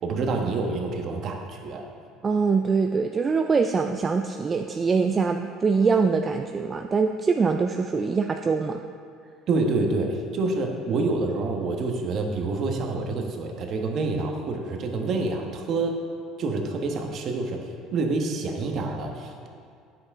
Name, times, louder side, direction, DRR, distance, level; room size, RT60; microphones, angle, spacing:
voice 1, 0.0-1.8 9.5-16.0 16.4-19.5, right 3 dB, 50° right, 3 dB, 1.2 m, -27 dB
voice 2, 2.2-8.8, right 5 dB, 30° right, 5 dB, 0.4 m, -23 dB
9.5 x 7.6 x 3.6 m, 2.3 s
supercardioid pair, 85°, 0 cm